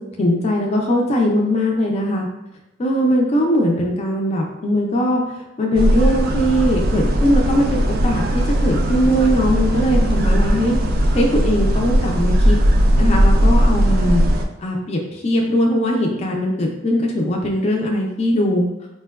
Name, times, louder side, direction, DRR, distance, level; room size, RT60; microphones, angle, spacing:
voice 1, 0.2-2.3 2.8-5.2 5.6-10.8 11.1-12.6 13.0-14.2 14.6-18.6, equal, 30° left, 0 dB, 0.3 m, -20 dB
sound 1, 5.7-14.4, equal, 45° right, 0.3 m, -17 dB
4.3 x 2.1 x 2.3 m, 0.91 s
head